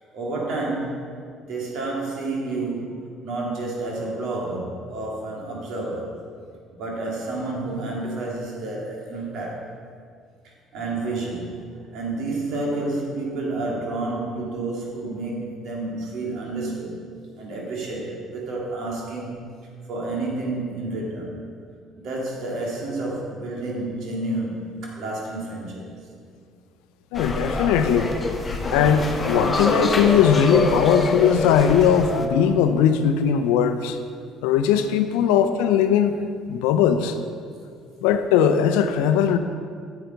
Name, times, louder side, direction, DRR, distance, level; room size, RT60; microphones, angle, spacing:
voice 1, 0.1-1.0 1.5-6.1 6.7-9.7 10.7-11.6 11.9-17.0 17.4-19.5 19.9-21.4 22.0-25.9, right 2 dB, 70° right, -2 dB, 2.2 m, -30 dB
voice 2, 27.1-28.1 28.5-34.0 34.4-36.1 36.5-37.2 38.0-39.4, left 8 dB, 85° left, 9 dB, 0.5 m, -19 dB
sound 1, 27.1-32.3, left 2 dB, 30° left, 1.0 m, -25 dB
10.0 x 7.0 x 4.0 m, 2.2 s
supercardioid pair, 75°, 0 cm